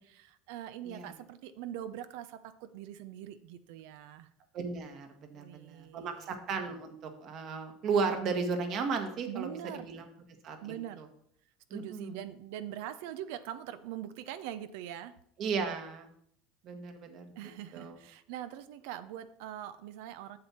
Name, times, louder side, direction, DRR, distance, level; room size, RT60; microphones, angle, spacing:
voice 1, 0.0-4.3 5.3-6.4 9.3-9.9 10.6-11.0 11.7-15.1 17.4-20.4, right 11 dB, 70° right, 12 dB, 0.6 m, -43 dB
voice 2, 4.5-10.0 10.4-11.0 11.7-12.2 15.4-16.1 16.6-17.3 17.7-18.0, right 5 dB, 50° right, 5 dB, 1.5 m, -35 dB
7.6 x 7.1 x 4.3 m, 0.69 s
hypercardioid pair, 90°, 0 cm